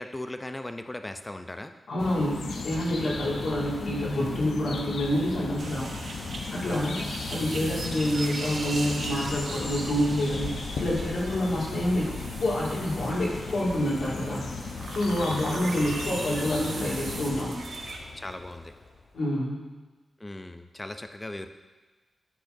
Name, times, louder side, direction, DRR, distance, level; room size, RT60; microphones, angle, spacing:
voice 1, 0.0-1.7 6.7-7.1 15.2-15.5 18.1-18.7 20.2-21.5, left 1 dB, 15° left, 8 dB, 0.4 m, -38 dB
voice 2, 1.9-5.9 6.5-7.0 7.3-12.1 12.4-14.4 14.9-17.6 19.1-19.6, left 1 dB, 75° left, -5 dB, 2.1 m, -27 dB
Rain, 1.9-19.2, left 3 dB, 50° left, 0.9 m, -45 dB
sound 1, 2.0-17.4, left 4 dB, 90° left, 0.6 m, -37 dB
sound 2, 5.6-18.0, right 3 dB, 65° right, 0.8 m, -39 dB
10.0 x 6.1 x 2.6 m, 1.3 s
wide cardioid pair, 170°, 0 cm